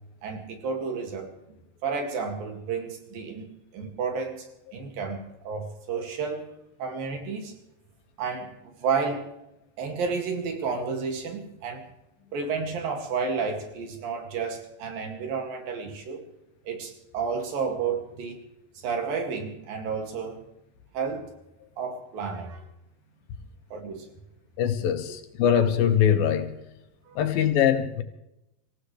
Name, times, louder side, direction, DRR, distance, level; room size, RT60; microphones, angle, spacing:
voice 1, 0.2-1.3 1.8-4.5 4.7-6.5 6.8-7.5 8.2-8.5 8.8-9.3 9.8-11.9 12.3-16.2 16.7-18.4 18.8-20.4 20.9-21.3 21.8-22.7 23.7-24.1 27.1-27.2, right 5 dB, 75° right, 4.0 m, -31 dB
voice 2, 24.6-26.5 27.2-28.0, left 9 dB, 80° left, 3.1 m, -22 dB
26.0 x 16.0 x 3.3 m
omnidirectional pair, 4.2 m